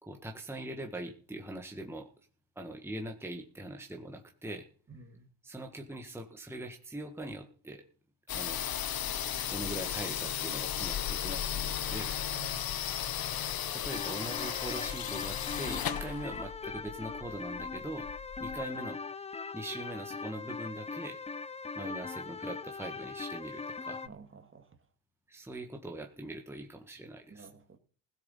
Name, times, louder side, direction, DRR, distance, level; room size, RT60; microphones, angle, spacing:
voice 1, 0.0-2.1 2.5-4.7 5.4-7.8 8.3-8.6 9.5-12.2 13.7-18.1 18.4-19.0 19.5-21.2 21.8-24.0 25.3-27.5, right 1 dB, 5° right, 3 dB, 1.7 m, -42 dB
voice 2, 4.9-5.3 12.3-12.7 24.0-24.7 27.3-27.8, right 4 dB, 25° right, 7 dB, 2.3 m, -51 dB
sound 1, 8.3-18.6, left 10 dB, 45° left, 1.2 m, -35 dB
sound 2, 13.9-24.1, left 4 dB, 15° left, 0.6 m, -40 dB
17.0 x 7.0 x 5.7 m, 0.41 s
supercardioid pair, 85°, 48 cm